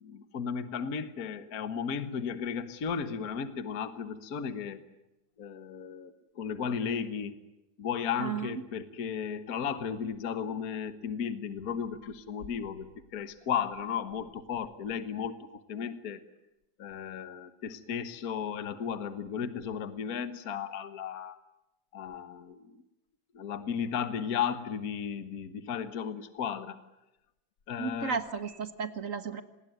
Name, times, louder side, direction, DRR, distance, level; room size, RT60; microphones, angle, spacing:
voice 1, 0.0-4.8 5.4-7.4 7.8-12.9 13.1-15.4 15.7-16.2 16.8-21.4 21.9-22.7 23.3-26.8 27.7-28.2, left 7 dB, 50° left, 11 dB, 1.1 m, -34 dB
voice 2, 27.8-29.4, right 6 dB, 45° right, 11 dB, 1.0 m, -34 dB
27.0 x 20.5 x 9.3 m, 0.97 s
omnidirectional pair, 3.3 m